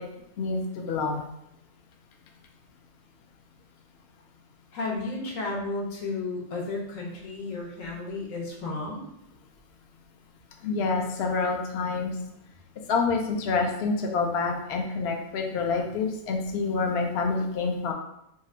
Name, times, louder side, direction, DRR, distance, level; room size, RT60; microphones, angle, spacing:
voice 1, 0.4-1.2 10.6-12.1 12.9-17.9, left 4 dB, 65° left, 1 dB, 0.7 m, -27 dB
voice 2, 4.7-9.0, left 3 dB, 80° left, -1 dB, 1.2 m, -33 dB
2.8 x 2.5 x 4.2 m, 0.81 s
omnidirectional pair, 1.4 m